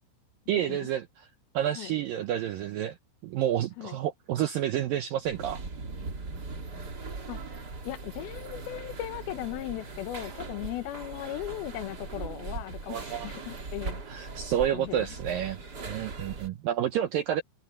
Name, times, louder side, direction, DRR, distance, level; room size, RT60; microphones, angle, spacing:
voice 1, 0.5-1.3 1.5-3.0 3.2-5.6 12.9-13.3 14.1-17.4, right 11 dB, 85° right, 2.0 m, -29 dB
sound 1, 5.2-16.5, right 3 dB, 30° right, 2.0 m, -40 dB
voice 2, 7.3-14.0 14.7-15.1, left 14 dB, 75° left, 2.3 m, -38 dB
omnidirectional pair, 5.2 m